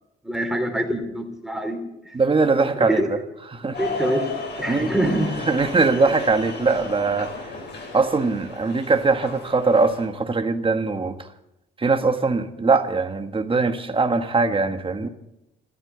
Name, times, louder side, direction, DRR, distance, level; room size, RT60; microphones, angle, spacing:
voice 1, 0.2-2.2 2.8-3.1 3.8-4.2 4.6-5.4, right 1 dB, ahead, 3 dB, 3.5 m, -25 dB
voice 2, 2.1-3.2 3.5-3.8 4.7-4.9 5.5-7.3 7.9-11.3 11.8-15.1, right 4 dB, 25° right, 7 dB, 1.6 m, -21 dB
sound 1, 3.7-10.1, left 3 dB, 60° left, 5.2 m, -34 dB
13.5 x 12.5 x 8.2 m, 0.86 s
cardioid pair, 90°, 20 cm